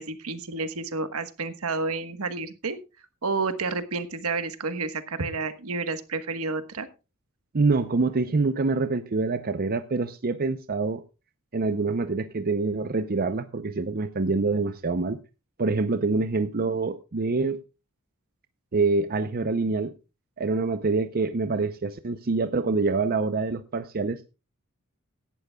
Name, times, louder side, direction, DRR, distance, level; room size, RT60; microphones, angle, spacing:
voice 1, 0.0-2.8 3.2-6.9, right 3 dB, 75° right, 10 dB, 1.3 m, -30 dB
voice 2, 7.5-11.0 11.5-15.2 15.6-17.6 18.7-19.9 20.4-24.2, right 3 dB, 45° right, 11 dB, 0.6 m, -26 dB
17.0 x 11.5 x 2.3 m, 0.29 s
head